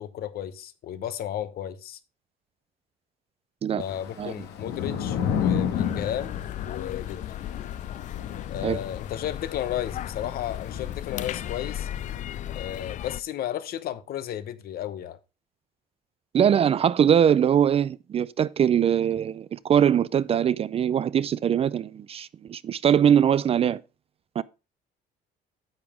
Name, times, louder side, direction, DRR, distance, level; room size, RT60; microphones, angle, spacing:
voice 1, 0.0-2.0 3.8-7.2 8.5-11.9 12.5-15.2, left 11 dB, 65° left, 0.9 m, -33 dB
Thunder / Rain, 3.8-12.2, left 8 dB, 90° left, 1.5 m, -32 dB
sound 1, 5.7-13.2, left 11 dB, 45° left, 0.4 m, -36 dB
voice 2, 16.3-23.8 24.4-24.5, right 9 dB, 35° right, 0.4 m, -22 dB
9.6 x 7.1 x 3.5 m
cardioid pair, 110°, 17 cm